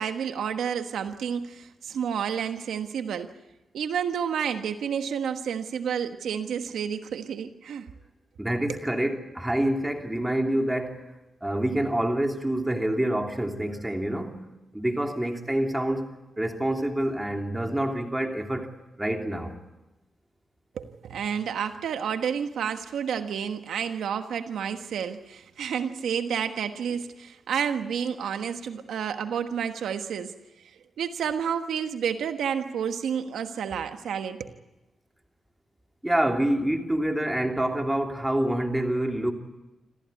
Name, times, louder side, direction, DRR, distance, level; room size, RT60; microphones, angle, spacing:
voice 1, 0.0-3.3 3.7-7.9 8.7-8.8 20.7-30.3 31.0-34.5, right 7 dB, 90° right, 1.4 m, -30 dB
voice 2, 8.4-11.1 11.4-14.4 14.7-18.7 19.0-19.5 36.0-39.3, right 1 dB, 10° right, 3.0 m, -27 dB
27.0 x 15.0 x 9.6 m
cardioid pair, 85°, 0 cm